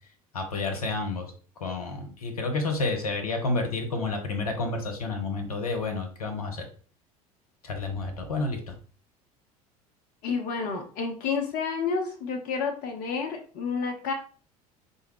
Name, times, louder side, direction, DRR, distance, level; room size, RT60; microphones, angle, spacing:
voice 1, 0.3-6.6 7.6-8.7, left 3 dB, 80° left, 4 dB, 0.9 m, -30 dB
voice 2, 10.2-14.1, left 5 dB, 50° left, 4 dB, 0.7 m, -30 dB
4.9 x 2.6 x 3.0 m, 0.41 s
figure-of-eight pair, 70°, 19 cm